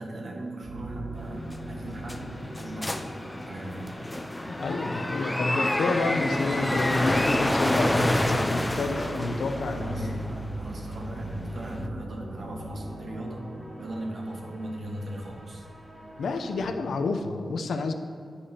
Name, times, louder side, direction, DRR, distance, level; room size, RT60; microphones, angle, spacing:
voice 1, 0.0-3.2 3.4-4.0 9.7-13.5 13.8-15.6 16.6-16.7, right 1 dB, 55° right, 0 dB, 1.4 m, -37 dB
sound 1, 0.6-16.6, right 1 dB, 40° right, 2.3 m, -41 dB
sound 2, 1.5-11.8, left 1 dB, 10° left, 0.4 m, -28 dB
voice 2, 4.5-10.2 16.2-17.9, left 3 dB, 85° left, 6 dB, 0.6 m, -29 dB
10.0 x 9.8 x 2.9 m, 2.4 s
wide cardioid pair, 120°, 0 cm